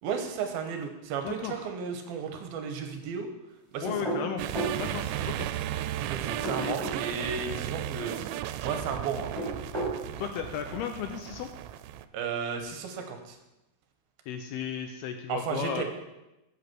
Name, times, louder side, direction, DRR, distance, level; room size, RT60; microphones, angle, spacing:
voice 1, 0.0-3.3 3.7-3.9 6.0-8.1 8.6-9.5 12.1-13.4 15.3-15.8, right 6 dB, 75° right, 5 dB, 2.5 m, -34 dB
voice 2, 1.2-1.5 3.8-4.4 4.8-5.5 6.6-6.8 10.2-11.5 14.3-15.8, left 9 dB, 80° left, 6 dB, 2.4 m, -34 dB
sound 1, 3.8-4.8 6.2-7.0 9.2-10.0, right 2 dB, 10° right, 2.1 m, -32 dB
sound 2, 4.4-12.1, right 12 dB, 90° right, 2.8 m, -35 dB
8.2 x 8.1 x 6.0 m, 0.95 s
omnidirectional pair, 5.0 m